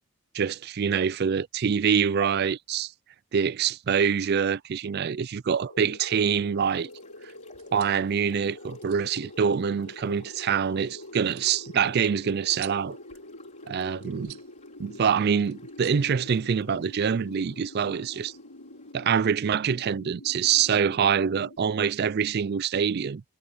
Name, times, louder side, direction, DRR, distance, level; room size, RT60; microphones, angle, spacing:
voice 1, 0.3-2.9 3.3-6.9 7.7-13.0 13.7-14.4 14.8-18.3 18.9-23.2, right 7 dB, 45° right, 0.4 m, -25 dB
sound 1, 5.7-21.6, left 1 dB, 75° left, 7.9 m, -46 dB
sound 2, 6.6-18.9, left 3 dB, 30° left, 4.3 m, -59 dB
sound 3, 7.5-16.9, right 14 dB, 75° right, 5.7 m, -52 dB
head